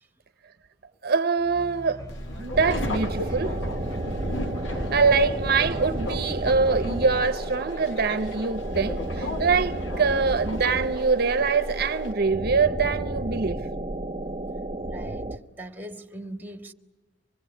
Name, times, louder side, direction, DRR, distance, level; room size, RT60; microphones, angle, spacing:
voice 1, 1.0-2.0 2.4-3.6 4.7-13.6, right 4 dB, 55° right, 0.8 m, -24 dB
sound 1, 1.4-8.1, right 1 dB, 20° left, 3.5 m, -43 dB
Subway metro underground, 2.1-12.1, left 1 dB, 85° left, 1.7 m, -36 dB
sound 2, 2.5-15.4, right 1 dB, 30° right, 0.9 m, -32 dB
voice 2, 14.9-16.7, right 1 dB, 10° right, 1.6 m, -40 dB
25.5 x 20.5 x 9.7 m
head